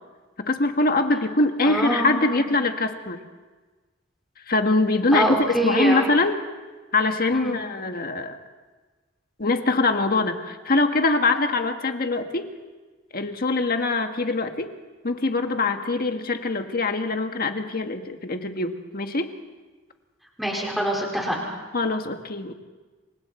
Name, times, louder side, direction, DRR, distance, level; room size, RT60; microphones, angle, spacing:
voice 1, 0.4-3.2 4.5-6.4 6.9-8.4 9.4-12.5 13.1-14.7 15.0-19.3 21.7-22.5, left 2 dB, 50° left, 6 dB, 1.6 m, -23 dB
voice 2, 1.6-2.5 5.1-6.0 7.3-7.6 20.4-21.5, right 1 dB, ahead, -2 dB, 4.8 m, -25 dB
28.5 x 24.5 x 4.4 m, 1.3 s
head